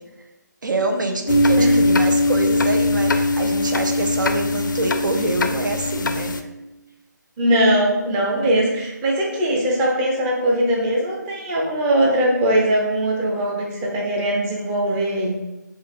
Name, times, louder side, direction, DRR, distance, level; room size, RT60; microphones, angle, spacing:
voice 1, 0.6-6.3, right 2 dB, 85° right, 4 dB, 0.8 m, -25 dB
sound 1, 1.3-6.4, left 2 dB, 85° left, 0.4 m, -20 dB
voice 2, 7.4-15.3, right 1 dB, 10° right, -2 dB, 0.5 m, -20 dB
4.5 x 2.4 x 3.5 m, 0.99 s
figure-of-eight pair, 160°, 10 cm